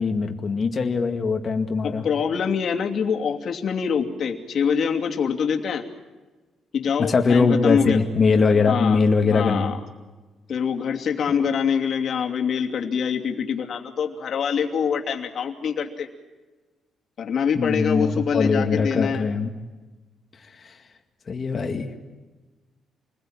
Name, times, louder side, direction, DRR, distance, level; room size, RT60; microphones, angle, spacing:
voice 1, 0.0-2.0 7.0-9.8 17.6-19.5 20.6-20.7 21.3-22.0, left 4 dB, 35° left, 4 dB, 2.1 m, -21 dB
voice 2, 1.8-5.8 6.7-8.0 8.7-9.0 9.3-9.8 10.5-16.1 17.2-19.3, left 7 dB, 50° left, 3 dB, 2.8 m, -25 dB
28.0 x 21.0 x 9.0 m, 1.2 s
cardioid pair, 135°, 0 cm